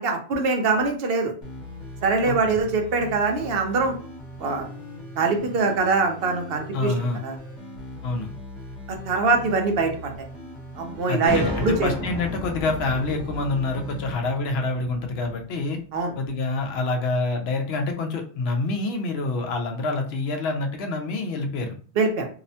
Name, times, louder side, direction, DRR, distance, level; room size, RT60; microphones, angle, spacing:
voice 1, 0.0-1.3 2.0-3.9 4.4-4.7 5.2-6.9 7.2-7.3 9.1-10.1 10.8-11.9 15.9-16.1 22.0-22.3, right 4 dB, 70° right, 4 dB, 0.8 m, -23 dB
sound 1, 1.4-14.1, left 1 dB, 45° left, 1.1 m, -40 dB
voice 2, 2.3-2.6 6.7-7.2 8.0-8.3 11.1-15.8 16.2-21.7, left 3 dB, 80° left, 4 dB, 0.8 m, -27 dB
sound 2, 11.3-15.7, left 1 dB, 35° right, 0.3 m, -34 dB
2.7 x 2.1 x 2.6 m, 0.41 s
omnidirectional pair, 1.1 m